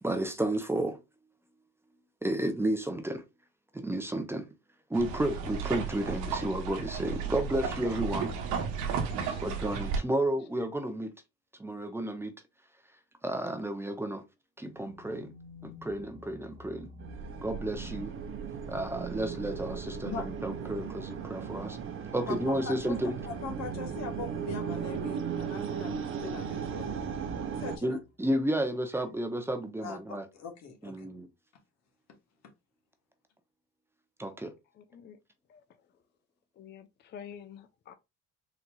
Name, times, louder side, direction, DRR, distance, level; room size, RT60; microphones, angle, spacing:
voice 1, 0.0-1.0 2.2-3.2 3.7-4.5 4.9-8.3 9.4-11.1 11.6-12.3 13.2-14.2 14.6-15.3 15.6-16.9 17.4-18.1 18.7-21.8 22.1-23.2 27.8-30.3 30.8-31.3 34.2-34.5, right 1 dB, 10° right, 0.6 m, -32 dB
sound 1, 4.9-10.0, right 6 dB, 80° right, 0.8 m, -33 dB
voice 2, 8.7-9.6 34.8-35.2 35.5-35.6 36.6-37.9, left 8 dB, 35° left, 0.5 m, -49 dB
sound 2, 14.6-17.9 18.6-25.2 26.2-28.1, right 2 dB, 25° right, 1.2 m, -51 dB
sound 3, 17.0-27.8, right 7 dB, 45° right, 0.7 m, -37 dB
voice 3, 20.0-20.4 22.3-26.9 27.6-28.0 29.8-31.1, left 5 dB, 60° left, 1.2 m, -41 dB
3.9 x 2.8 x 2.2 m
cardioid pair, 100°, 30 cm